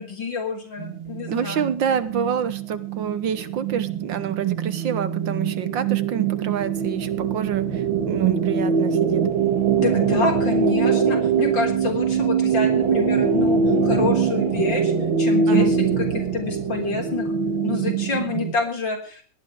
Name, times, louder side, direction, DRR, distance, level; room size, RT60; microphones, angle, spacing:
voice 1, 0.0-1.7 9.7-14.9 15.2-17.3 17.6-19.2, left 4 dB, 65° left, 2 dB, 4.3 m, -27 dB
sound 1, 0.8-18.5, right 6 dB, 85° right, 2.6 m, -23 dB
voice 2, 1.3-9.3 15.5-15.7, right 8 dB, 70° right, 13 dB, 1.8 m, -27 dB
18.0 x 11.5 x 4.9 m, 0.41 s
omnidirectional pair, 2.2 m